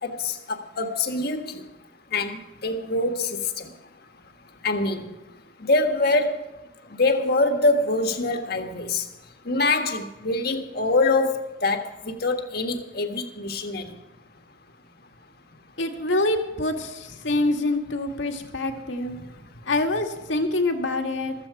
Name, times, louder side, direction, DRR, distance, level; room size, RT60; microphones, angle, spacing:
voice 1, 0.0-1.6 2.1-3.7 4.6-5.1 5.6-6.4 7.0-9.0 9.4-11.3 11.6-13.9, left 2 dB, 55° left, 6 dB, 1.5 m, -24 dB
voice 2, 15.8-19.2 19.7-21.3, left 2 dB, 75° left, 4 dB, 2.0 m, -25 dB
15.0 x 14.0 x 4.9 m, 1.1 s
head